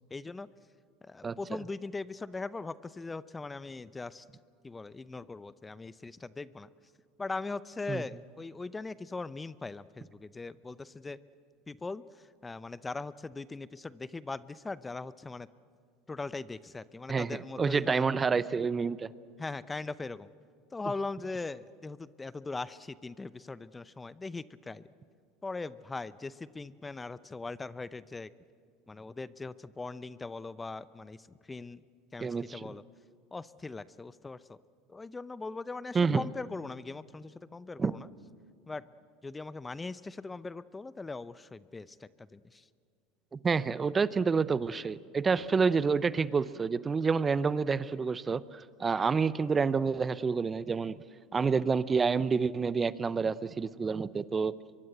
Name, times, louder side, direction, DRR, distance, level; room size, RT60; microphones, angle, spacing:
voice 1, 0.1-0.5 1.0-4.2 4.6-6.7 7.2-11.2 11.7-12.0 12.4-15.5 16.1-18.1 19.4-20.3 20.7-24.8 25.4-28.3 28.9-31.8 32.1-32.8 33.3-34.6 34.9-38.1 38.7-38.8 39.2-42.6, left 3 dB, 15° left, 17 dB, 0.7 m, -40 dB
voice 2, 17.1-19.1 32.2-32.6 35.9-36.2 37.8-37.9 43.3-51.0 51.3-54.5, right 5 dB, 25° right, 17 dB, 0.7 m, -28 dB
24.0 x 23.0 x 7.9 m, 2.3 s
hypercardioid pair, 85°, 0 cm